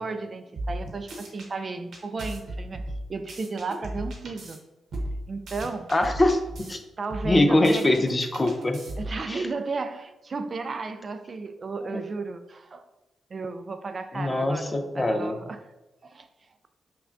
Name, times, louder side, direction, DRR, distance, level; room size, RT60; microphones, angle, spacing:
voice 1, 0.0-2.8 3.1-4.6 5.3-5.9 7.0-7.9 9.0-12.9 13.3-15.7 16.0-16.3, right 3 dB, 45° right, 0.3 m, -34 dB
sound 1, 0.6-1.5 1.9-4.6 4.9-6.7 7.1-9.2, right 1 dB, 70° right, 0.9 m, -35 dB
voice 2, 5.9-6.4 6.7-6.8 7.2-8.8 9.3-9.4 11.9-12.0 14.1-15.3, left 1 dB, 30° left, 0.5 m, -23 dB
5.7 x 2.2 x 2.6 m
cardioid pair, 65°, 0 cm